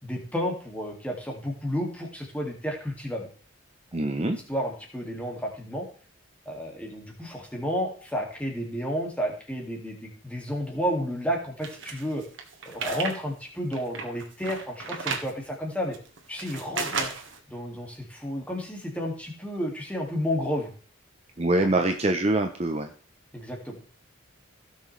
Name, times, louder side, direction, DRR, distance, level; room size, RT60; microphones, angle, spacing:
voice 1, 0.0-3.3 4.2-5.9 6.5-12.2 12.7-16.0 16.3-17.1 17.5-20.7 21.6-21.7 23.3-23.8, equal, 5° left, 0 dB, 2.3 m, -31 dB
voice 2, 3.9-4.4 21.4-22.9, right 2 dB, 30° right, 6 dB, 0.8 m, -24 dB
sound 1, 11.6-13.2 13.5-15.3 15.9-17.4, right 5 dB, 65° right, 1.7 m, -33 dB
16.5 x 6.4 x 3.3 m, 0.42 s
head